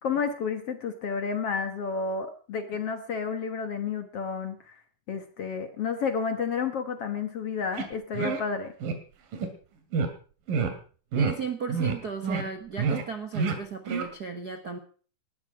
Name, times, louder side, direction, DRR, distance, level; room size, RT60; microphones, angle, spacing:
voice 1, 0.0-4.8 5.1-8.7, left 5 dB, 55° left, 7 dB, 1.9 m, -31 dB
sound 1, 7.8-7.9 8.1-8.4 8.8-9.0 9.3-9.5 9.9-10.1 10.5-10.7 11.1-11.3 11.7-12.0 12.2-12.4 12.8-13.0 13.3-13.6 13.9-14.0, right 5 dB, 75° right, 3.8 m, -27 dB
voice 2, 11.1-14.8, right 5 dB, 50° right, 5 dB, 1.2 m, -35 dB
19.5 x 13.5 x 4.9 m, 0.42 s
omnidirectional pair, 4.0 m